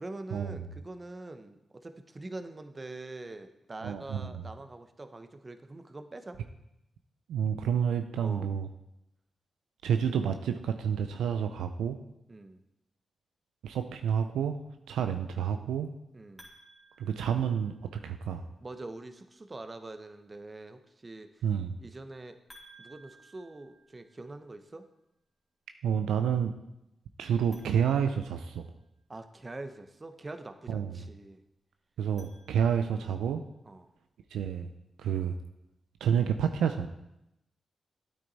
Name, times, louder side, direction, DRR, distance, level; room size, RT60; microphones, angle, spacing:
voice 1, 0.0-6.4 8.2-8.5 12.3-12.6 16.1-16.5 18.6-21.4 21.8-22.4 22.8-24.9 29.1-31.4 33.7-33.9, right 2 dB, 35° right, 8 dB, 1.0 m, -44 dB
voice 2, 3.8-4.4 7.3-8.7 9.8-12.0 13.6-14.6 14.9-15.9 17.0-17.7 18.0-18.4 21.4-21.7 25.8-26.5 27.2-28.7 30.7-30.9 32.0-33.4 34.3-34.7 35.0-35.3 36.0-36.9, right 8 dB, 85° right, 7 dB, 0.4 m, -29 dB
sound 1, 16.4-18.1 22.5-24.5 27.4-29.0 31.9-33.1, right 1 dB, 15° left, 2.8 m, -58 dB
9.2 x 8.7 x 4.1 m, 0.86 s
supercardioid pair, 45°, 0 cm